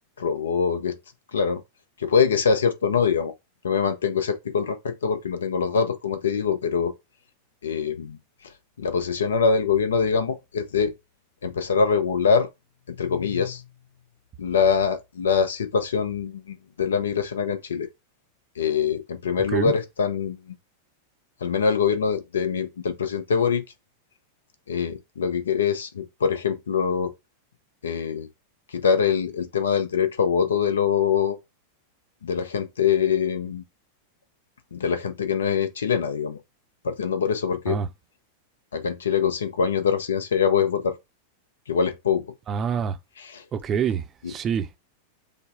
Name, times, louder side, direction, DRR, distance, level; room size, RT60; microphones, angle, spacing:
voice 1, 0.2-1.0 1.3-1.6 2.0-3.3 3.6-6.9 7.6-8.2 8.8-10.9 11.4-12.5 12.9-13.6 14.4-17.9 18.6-20.4 21.4-23.6 24.7-27.1 27.8-28.3 28.7-31.4 32.2-33.6 34.7-36.4 36.8-37.8 38.7-41.0 41.7-42.2 43.2-43.4 44.2-44.3, left 6 dB, 70° left, 0.7 m, -24 dB
voice 2, 42.5-43.0 43.5-44.7, right 7 dB, 30° right, 0.6 m, -26 dB
5.3 x 2.2 x 3.7 m
figure-of-eight pair, 90°, 0 cm